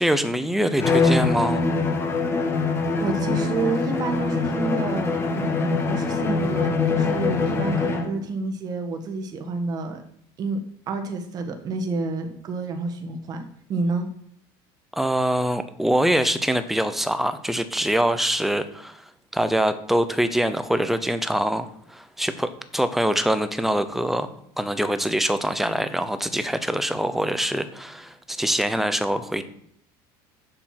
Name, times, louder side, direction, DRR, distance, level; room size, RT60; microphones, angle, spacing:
voice 1, 0.0-1.7 14.9-19.0 19.3-24.3 24.6-29.4, right 1 dB, ahead, 10 dB, 0.7 m, -24 dB
Bowed string instrument, 0.8-8.2, left 4 dB, 20° left, 1.5 m, -23 dB
voice 2, 3.0-10.0 10.4-10.6 10.9-13.4 13.7-14.1, right 3 dB, 35° right, 5 dB, 1.4 m, -29 dB
7.4 x 6.7 x 5.9 m, 0.68 s
cardioid pair, 145°, 11 cm